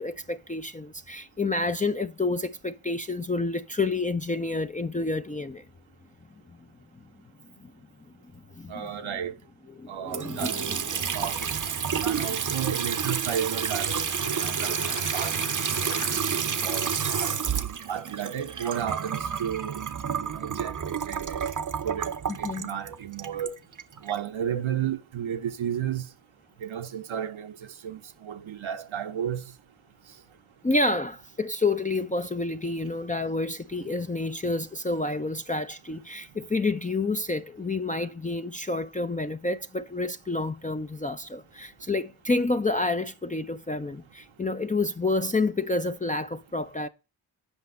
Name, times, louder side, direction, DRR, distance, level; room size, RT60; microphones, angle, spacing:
voice 1, 0.0-5.6 7.6-7.7 8.3-8.7 9.8-11.2 22.4-22.7 30.6-46.9, left 2 dB, 15° left, 0.5 m, -29 dB
voice 2, 8.7-9.3 9.9-10.6 11.1-15.3 15.8-16.1 16.4-17.3 17.9-19.8 20.2-20.7 21.0-21.5 21.8-23.6 24.0-26.0 26.6-27.6 27.8-29.4, right 9 dB, 75° right, 0.8 m, -33 dB
Water tap faucet / Sink (filling or washing) / Trickle dribble, 10.1-24.2, right 7 dB, 40° right, 0.7 m, -30 dB
Bicycle, 13.9-17.1, left 7 dB, 75° left, 1.0 m, -43 dB
8.1 x 5.2 x 5.3 m
cardioid pair, 40°, 48 cm